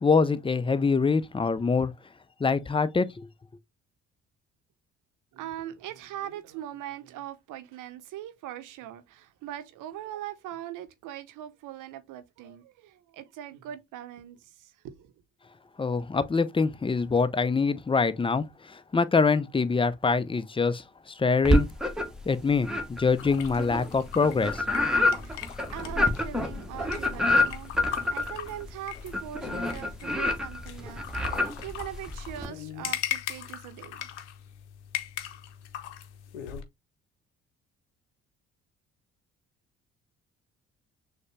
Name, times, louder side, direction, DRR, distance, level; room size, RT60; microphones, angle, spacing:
voice 1, 0.0-1.9 2.4-3.3 15.8-21.7 22.3-24.6, left 4 dB, 15° left, 0.6 m, -25 dB
voice 2, 5.3-15.1 25.2-34.1, right 12 dB, 65° right, 0.8 m, -41 dB
sound 1, 21.4-22.3 22.6-32.5, left 1 dB, ahead, 1.2 m, -27 dB
sound 2, 23.2-36.6, left 11 dB, 85° left, 0.6 m, -40 dB
6.4 x 2.3 x 3.2 m
hypercardioid pair, 50°, 34 cm